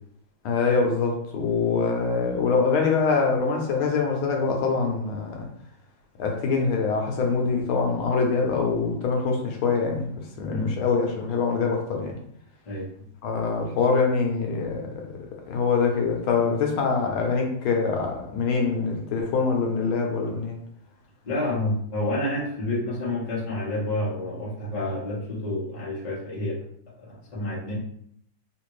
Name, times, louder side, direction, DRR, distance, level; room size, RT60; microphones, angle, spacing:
voice 1, 0.4-5.5 6.2-12.2 13.2-20.6, left 4 dB, 80° left, 1.5 m, -24 dB
voice 2, 21.2-26.6 27.0-27.8, left 1 dB, 30° left, 0.8 m, -29 dB
3.6 x 2.5 x 3.1 m
omnidirectional pair, 2.3 m